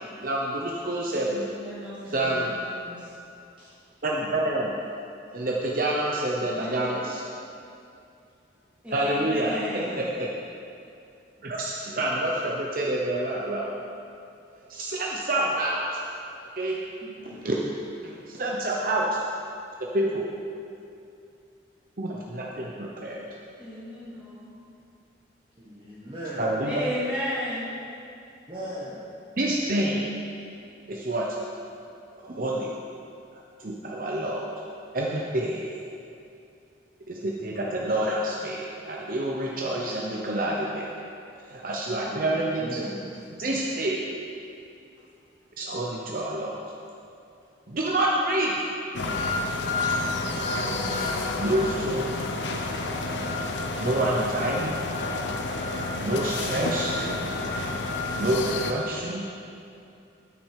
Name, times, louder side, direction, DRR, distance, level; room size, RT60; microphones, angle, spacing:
voice 1, 0.0-1.6 2.1-2.6 4.0-4.9 5.3-7.2 8.9-10.3 11.4-13.7 14.7-16.0 16.6-16.8 17.2-17.6 18.0-19.2 19.8-20.3 22.0-23.2 26.4-26.8 29.4-30.1 30.9-31.3 32.2-32.7 33.3-34.5 34.9-35.7 37.1-40.9 41.4-42.8 43.4-44.1 45.6-46.6 47.7-48.5 51.4-52.1 53.8-54.8 56.0-57.0 58.2-59.2, right 1 dB, 50° right, -2 dB, 0.7 m, -28 dB
voice 2, 1.1-3.1 6.4-7.1 8.8-10.0 17.0-17.4 23.6-24.5 26.6-27.6, equal, 5° right, -10 dB, 2.6 m, -35 dB
voice 3, 25.6-26.5 28.5-29.0 42.0-43.0, right 1 dB, 25° right, -9 dB, 1.2 m, -37 dB
sound 1, 48.9-58.7, left 2 dB, 75° left, 0.8 m, -29 dB
8.7 x 6.2 x 6.6 m, 2.6 s
head